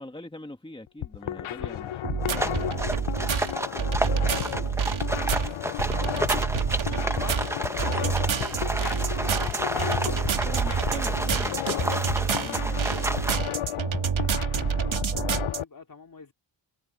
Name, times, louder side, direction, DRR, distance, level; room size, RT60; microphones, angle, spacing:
voice 1, 0.0-2.5 10.4-11.7 12.3-12.9, left 1 dB, 10° left, 2.3 m, -42 dB
sound 1, 0.9-15.6, left 12 dB, 75° left, 0.7 m, -33 dB
voice 2, 1.3-1.7 2.1-6.2 6.5-10.4 11.7-14.6 15.2-16.3, left 4 dB, 45° left, 3.5 m, -47 dB
sound 2, 2.0-15.6, right 6 dB, 75° right, 2.2 m, -28 dB
sound 3, 2.3-13.4, right 1 dB, 5° right, 0.9 m, -31 dB
wide cardioid pair, 150°, 48 cm